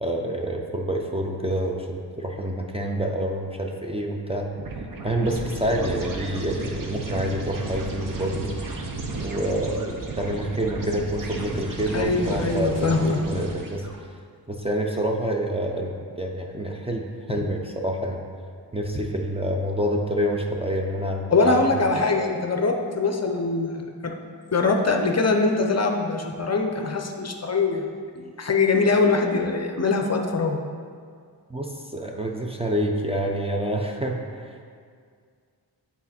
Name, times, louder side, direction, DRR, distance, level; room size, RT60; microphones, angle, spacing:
voice 1, 0.0-4.5 5.0-8.5 9.2-13.0 13.2-13.9 14.5-18.2 18.7-21.5 31.5-34.7, right 1 dB, 15° right, 0 dB, 0.5 m, -27 dB
sound 1, 4.5-14.0, right 2 dB, 50° right, 0.9 m, -33 dB
voice 2, 11.9-13.2 21.3-23.8 24.0-24.1 24.5-27.8 28.2-30.6, left 3 dB, 40° left, 3 dB, 0.6 m, -22 dB
8.4 x 4.2 x 4.2 m, 2.1 s
wide cardioid pair, 95°, 43 cm